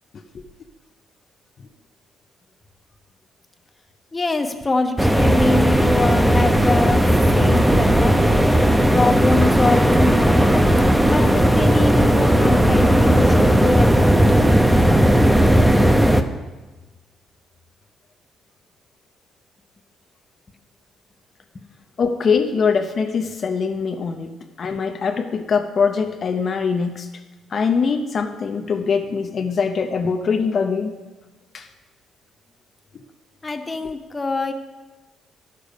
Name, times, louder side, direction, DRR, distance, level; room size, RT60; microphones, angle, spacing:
voice 1, 4.1-7.0 7.3-8.2 8.9-10.6 11.1-14.2 33.4-34.5, left 3 dB, 25° left, 6 dB, 1.0 m, -24 dB
sound 1, 5.0-16.2, right 1 dB, 5° right, 0.7 m, -16 dB
voice 2, 22.0-27.1 27.5-31.0 31.5-31.7 32.9-33.0, left 5 dB, 50° left, 5 dB, 0.7 m, -22 dB
11.5 x 6.7 x 5.2 m, 1.2 s
cardioid pair, 90°, 0 cm